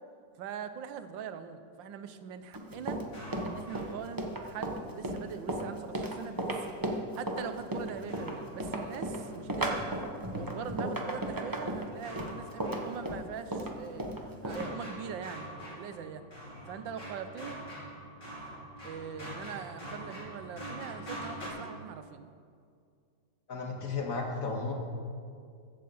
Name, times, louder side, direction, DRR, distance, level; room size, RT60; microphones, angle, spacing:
voice 1, 0.4-3.0 3.4-6.6 7.2-9.9 10.3-14.0 14.4-16.2 16.7-17.6 18.8-22.3, right 7 dB, 75° right, 10 dB, 1.5 m, -42 dB
Run, 2.5-14.7, right 1 dB, 15° right, 0.8 m, -35 dB
sound 1, 2.7-4.5 7.7-10.7 11.3-13.3 13.6-21.5, equal, 65° left, 4.1 m, -46 dB
voice 2, 23.5-24.7, left 4 dB, 45° left, 1 dB, 2.2 m, -34 dB
15.5 x 7.6 x 7.0 m, 2.3 s
omnidirectional pair, 2.1 m